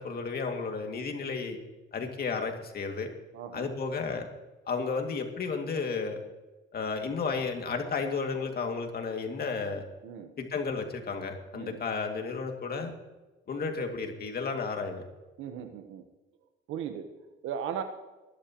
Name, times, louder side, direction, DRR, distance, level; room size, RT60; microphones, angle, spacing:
voice 1, 0.0-1.6 1.9-3.1 3.5-4.3 4.7-6.2 6.7-9.8 10.4-12.9 13.5-15.0, left 4 dB, 50° left, 4 dB, 2.4 m, -33 dB
voice 2, 3.3-3.7 10.0-10.3 11.5-11.8 15.4-16.0 16.7-17.1 17.4-17.8, right 8 dB, 90° right, 7 dB, 1.2 m, -37 dB
22.0 x 12.0 x 3.1 m, 1.1 s
cardioid pair, 90°, 20 cm